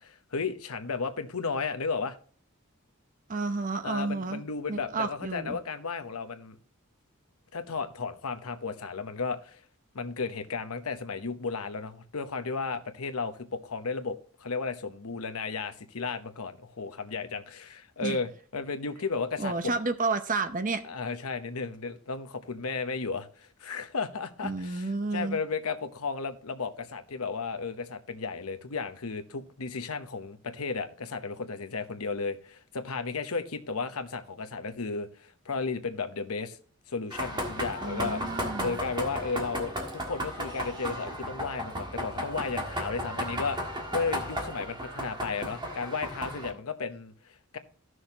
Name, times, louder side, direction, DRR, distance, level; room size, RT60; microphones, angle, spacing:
voice 1, 0.0-2.2 3.8-6.6 7.5-9.6 9.9-19.7 20.8-36.6 36.9-47.6, left 4 dB, 85° left, 0.9 m, -34 dB
voice 2, 3.3-4.4 4.7-5.6 18.0-18.2 19.4-20.8 24.4-25.4 37.8-38.8, right 3 dB, 40° right, 0.8 m, -31 dB
sound 1, 37.1-46.5, equal, 20° right, 1.5 m, -35 dB
14.5 x 6.3 x 2.9 m
head